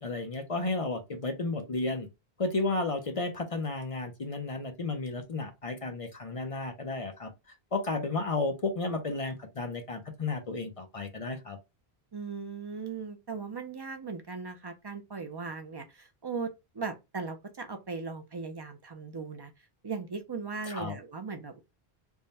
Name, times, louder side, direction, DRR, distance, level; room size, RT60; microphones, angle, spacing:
voice 1, 0.0-2.1 2.4-7.3 7.7-11.6 20.7-21.0, left 3 dB, 40° left, 0.6 m, -33 dB
voice 2, 12.1-19.5 19.8-21.6, right 4 dB, 40° right, 0.3 m, -38 dB
3.6 x 2.1 x 4.0 m
omnidirectional pair, 1.0 m